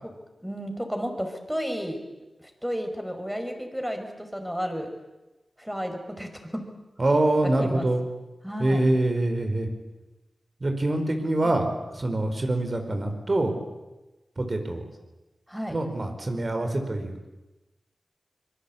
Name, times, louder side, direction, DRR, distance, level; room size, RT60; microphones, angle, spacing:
voice 1, 0.4-2.0 2.4-4.9 5.6-6.7 7.6-7.9 8.4-8.8 15.5-15.8, equal, 5° right, 5 dB, 5.2 m, -32 dB
voice 2, 7.0-8.0 8.6-9.7 10.6-13.5 14.4-14.8 15.7-17.3, right 1 dB, 40° right, 6 dB, 4.9 m, -25 dB
25.5 x 23.0 x 8.7 m, 1.1 s
wide cardioid pair, 70°, 0 cm